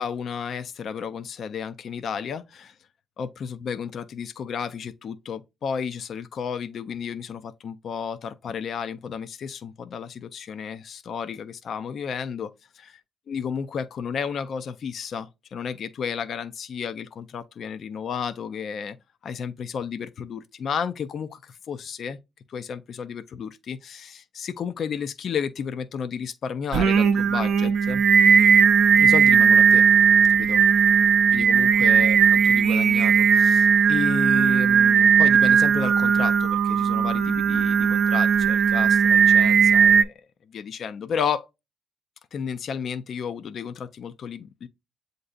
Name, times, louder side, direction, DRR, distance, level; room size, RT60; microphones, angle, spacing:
voice 1, 0.0-2.8 3.2-12.9 13.3-19.0 19.2-22.2 22.5-28.0 28.3-28.4 29.0-29.8 30.3-30.6 31.3-41.5 42.3-44.7, left 7 dB, 60° left, 0.4 m, -32 dB
Singing, 26.7-40.0, right 7 dB, 70° right, 0.5 m, -18 dB
7.8 x 2.6 x 2.4 m
cardioid pair, 90°, 0 cm